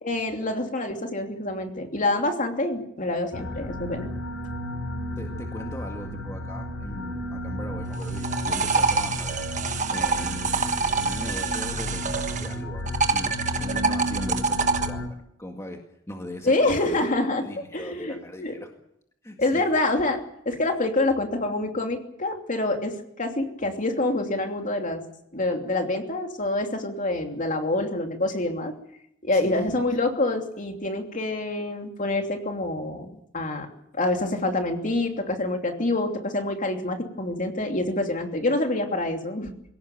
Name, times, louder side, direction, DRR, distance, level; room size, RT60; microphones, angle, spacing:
voice 1, 0.0-4.1 16.4-17.4 17.7-18.5 19.4-20.2 20.4-25.0 25.3-28.7 29.2-33.1 33.3-33.7 33.9-39.5, left 2 dB, 40° left, 4 dB, 2.9 m, -26 dB
sound 1, 3.3-15.1, left 1 dB, 80° left, 5.1 m, -33 dB
voice 2, 5.2-9.4 9.9-18.7 19.2-19.7 29.3-29.8, equal, 15° left, 3 dB, 2.0 m, -39 dB
sound 2, 7.9-12.5 12.9-14.9, right 4 dB, 40° right, 1.4 m, -26 dB
21.0 x 17.5 x 9.2 m, 0.75 s
head